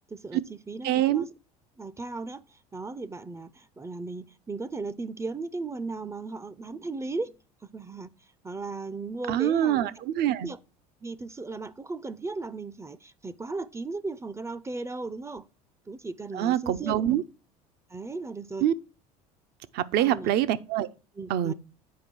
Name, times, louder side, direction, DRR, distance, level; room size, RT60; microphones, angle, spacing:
voice 1, 0.1-1.3 1.8-7.3 7.6-8.1 8.4-9.9 10.4-10.6 11.0-15.5 15.9-17.0 17.9-18.7 20.0-20.3 21.2-21.5, right 3 dB, 15° right, 0.5 m, -36 dB
voice 2, 0.8-1.2 9.3-10.5 16.3-17.2 18.6-18.7 19.7-20.9 21.3-21.5, right 11 dB, 55° right, 0.7 m, -25 dB
8.5 x 5.0 x 4.5 m
hypercardioid pair, 75°, 20 cm